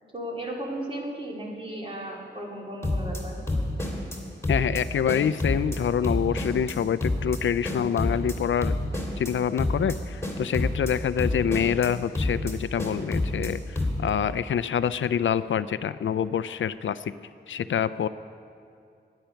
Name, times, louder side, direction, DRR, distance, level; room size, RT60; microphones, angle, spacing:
voice 1, 0.1-3.4, right 1 dB, 30° right, -2 dB, 2.5 m, -35 dB
sound 1, 2.8-3.2 3.5-4.2 4.4-4.8 5.1-5.8 6.0-6.7 7.0-7.4 7.6-8.3 8.6-9.3 9.6-10.0 10.2-10.9 11.2-11.9 12.1-12.5 12.8-13.5 13.8-14.1, left 2 dB, 15° left, 2.5 m, -27 dB
voice 2, 4.5-8.8 9.2-17.1 17.5-18.1, left 8 dB, 90° left, 15 dB, 0.4 m, -26 dB
21.0 x 9.0 x 5.7 m, 2.5 s
wide cardioid pair, 115°, 19 cm